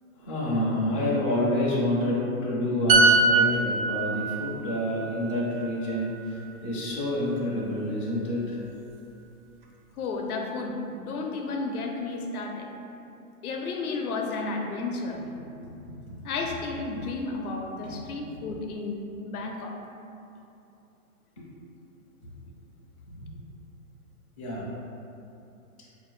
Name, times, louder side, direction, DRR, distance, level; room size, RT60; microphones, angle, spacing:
voice 1, 0.2-8.6 15.3-15.7 17.8-17.9 21.4-21.5 23.2-23.3 24.4-24.7, left 1 dB, 25° left, -7 dB, 0.4 m, -28 dB
sound 1, 2.9-6.5 6.8-7.1, right 3 dB, 40° right, 0.4 m, -24 dB
voice 2, 10.0-12.7 13.4-15.2 16.2-19.8, left 3 dB, 75° left, 1 dB, 0.7 m, -32 dB
4.1 x 2.6 x 3.1 m, 2.8 s
hypercardioid pair, 145°, 44 cm